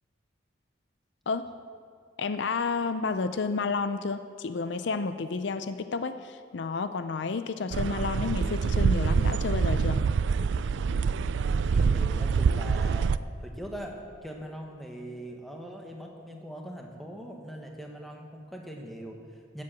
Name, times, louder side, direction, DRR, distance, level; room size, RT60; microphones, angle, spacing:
voice 1, 2.2-10.0, left 4 dB, 65° left, 11 dB, 0.5 m, -31 dB
sound 1, 7.7-13.2, right 5 dB, 65° right, 0.3 m, -25 dB
voice 2, 11.7-13.1 13.4-19.6, equal, ahead, 0 dB, 1.3 m, -41 dB
13.0 x 7.6 x 7.6 m, 2.1 s
head